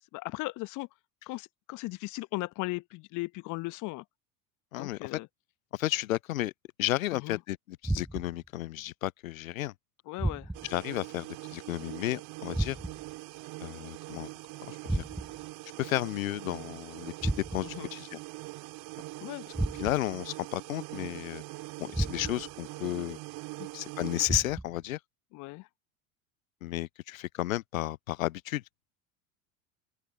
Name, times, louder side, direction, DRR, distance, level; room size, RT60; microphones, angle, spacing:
voice 1, 0.1-0.9 1.3-4.0 4.8-5.3 7.1-7.4 10.1-10.5 17.7-17.9 19.2-19.5 23.6-23.7 25.3-25.7, left 23 dB, 45° left, 1.1 m, -37 dB
voice 2, 4.7-5.2 5.7-6.5 6.8-9.7 10.6-12.8 13.6-14.3 14.7-15.0 15.8-18.2 19.8-21.4 21.8-23.2 23.7-25.0 26.6-28.6, left 15 dB, 70° left, 0.7 m, -33 dB
sound 1, 7.8-8.5 10.2-10.8 12.5-13.2 14.9-15.5 17.2-17.8 19.5-20.2 21.9-22.6 24.3-24.9, right 1 dB, ahead, 0.3 m, -33 dB
sound 2, 10.5-24.3, right 21 dB, 50° right, 3.8 m, -43 dB
open air
figure-of-eight pair, 70°, 42 cm